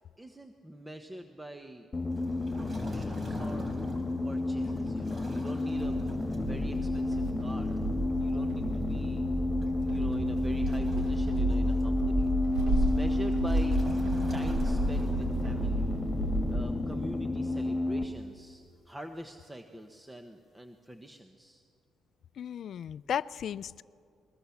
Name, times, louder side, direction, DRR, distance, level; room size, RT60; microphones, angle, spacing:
voice 1, 0.2-1.9 2.5-3.8 4.2-6.0 6.4-7.8 8.2-9.2 9.8-13.8 14.3-16.0 16.5-21.6, right 1 dB, 10° right, 6 dB, 1.1 m, -45 dB
sound 1, 1.9-18.0, left 2 dB, 25° left, 2.3 m, -31 dB
Waves surf, 2.1-15.8, right 1 dB, 30° right, 3.7 m, -49 dB
sound 2, 5.7-16.5, right 1 dB, 85° right, 3.2 m, -32 dB
voice 2, 22.4-23.8, left 9 dB, 65° left, 18 dB, 0.4 m, -35 dB
22.0 x 20.0 x 7.2 m, 2.3 s
cardioid pair, 90°, 0 cm